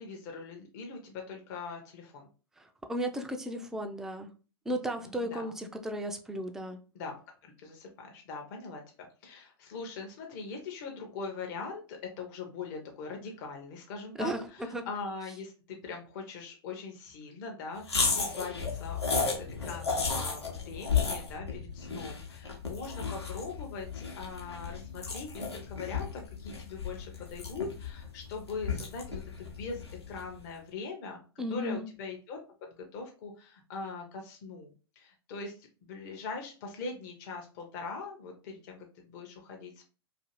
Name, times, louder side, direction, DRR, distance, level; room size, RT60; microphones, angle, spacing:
voice 1, 0.0-2.3 4.9-5.5 6.9-7.1 7.4-31.2 31.5-35.5 35.8-39.9, left 4 dB, 45° left, 2 dB, 0.6 m, -41 dB
voice 2, 2.9-4.3 4.7-6.8 14.2-14.4 14.7-14.8 31.4-31.9, right 1 dB, 5° right, 5 dB, 0.3 m, -34 dB
sound 1, 17.8-30.3, left 5 dB, 85° left, 0.8 m, -34 dB
2.5 x 2.5 x 2.8 m, 0.36 s
figure-of-eight pair, 100°, 13 cm